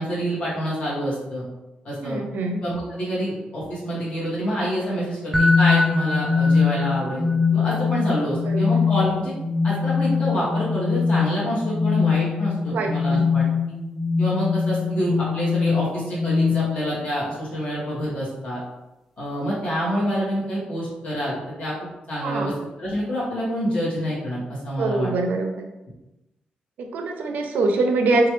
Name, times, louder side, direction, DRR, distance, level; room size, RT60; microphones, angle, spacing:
voice 1, 0.0-1.4 1.8-2.2 2.6-9.3 9.6-13.4 14.2-18.6 19.2-21.7 22.1-22.5 22.8-25.1, equal, 40° left, -7 dB, 1.2 m, -27 dB
voice 2, 2.0-2.6 8.4-8.7 12.7-13.3 22.2-22.5 24.8-25.7 26.8-28.3, right 3 dB, 85° right, 3 dB, 0.4 m, -24 dB
sound 1, 5.3-17.1, left 5 dB, ahead, 0.3 m, -22 dB
2.9 x 2.3 x 3.0 m, 0.98 s
wide cardioid pair, 175°, 3 cm